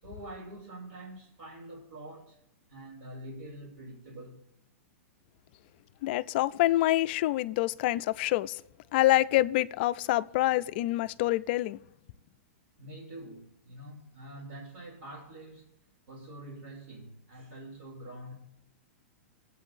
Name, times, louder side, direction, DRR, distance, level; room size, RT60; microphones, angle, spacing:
voice 1, 0.0-2.4 2.7-4.4 12.8-15.7 16.1-18.3, right 1 dB, 70° right, 3.0 m, -45 dB
voice 2, 6.0-8.6 8.9-11.8, left 16 dB, 50° left, 0.4 m, -26 dB
22.0 x 8.2 x 2.6 m
hypercardioid pair, 145°, 7 cm